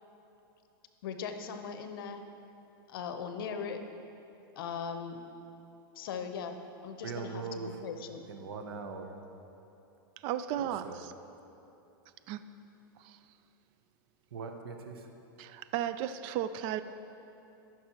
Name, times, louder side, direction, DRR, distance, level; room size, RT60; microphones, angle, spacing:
voice 1, 1.0-2.2 2.9-3.8 4.6-5.2 6.0-6.6 6.8-8.2, left 6 dB, 70° left, 7 dB, 0.7 m, -39 dB
voice 2, 7.0-7.7 8.3-9.1 10.6-11.0 14.3-15.0, right 5 dB, 80° right, 5 dB, 0.9 m, -40 dB
voice 3, 10.2-11.1 12.3-12.4 13.0-13.2 15.4-16.8, right 11 dB, 45° right, 11 dB, 0.4 m, -35 dB
13.5 x 6.0 x 2.9 m, 2.9 s
hypercardioid pair, 115°, 12 cm